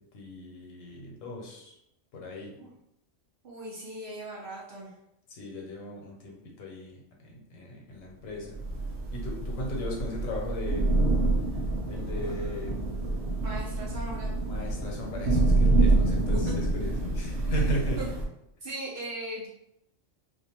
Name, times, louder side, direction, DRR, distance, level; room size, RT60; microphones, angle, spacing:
voice 1, 0.1-1.8 2.1-2.5 5.3-8.6 9.1-10.9 11.9-12.8 13.7-13.8 14.5-18.0, left 1 dB, 85° left, -1 dB, 1.1 m, -37 dB
voice 2, 3.4-4.9 13.4-14.3 16.3-16.5 18.0-18.1 18.6-19.5, right 2 dB, 60° right, -3 dB, 0.6 m, -38 dB
Thunder / Rain, 8.5-18.3, right 2 dB, 80° right, 1.0 m, -27 dB
2.5 x 2.1 x 2.8 m, 0.80 s
omnidirectional pair, 1.3 m